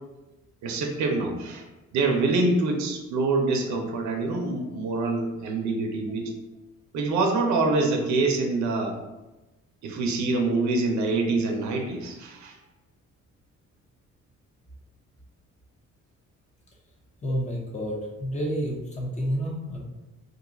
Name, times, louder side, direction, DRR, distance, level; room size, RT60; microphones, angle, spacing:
voice 1, 0.6-1.6 1.9-6.3 6.9-9.0 9.8-12.6, right 3 dB, 70° right, 2 dB, 0.6 m, -25 dB
voice 2, 17.2-19.8, equal, 25° left, -1 dB, 0.8 m, -29 dB
2.6 x 2.3 x 3.9 m, 1.1 s
cardioid pair, 90°, 30 cm